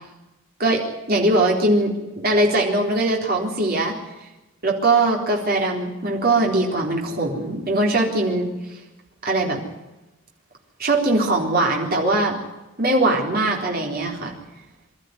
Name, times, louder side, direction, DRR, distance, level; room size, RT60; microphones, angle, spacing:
voice 1, 1.1-3.9 4.6-8.5 9.2-9.6 10.8-12.4 12.8-14.3, right 2 dB, 50° right, -1 dB, 3.9 m, -21 dB
23.5 x 13.0 x 9.4 m, 1.1 s
head